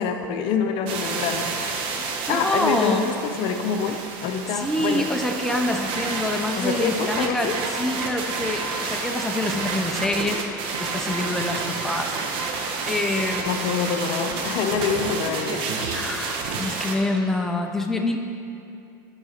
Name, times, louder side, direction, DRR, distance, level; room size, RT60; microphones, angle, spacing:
voice 1, 0.0-1.8 2.3-5.1 6.6-7.5 13.5-15.6, left 6 dB, 55° left, 6 dB, 0.7 m, -26 dB
sound 1, 0.9-17.0, right 4 dB, 55° right, 0.9 m, -29 dB
voice 2, 2.3-3.0 4.5-12.2 12.9-13.6 15.9-18.2, left 1 dB, 5° left, 3 dB, 0.5 m, -26 dB
11.0 x 4.9 x 4.3 m, 2.7 s
supercardioid pair, 110°, 11 cm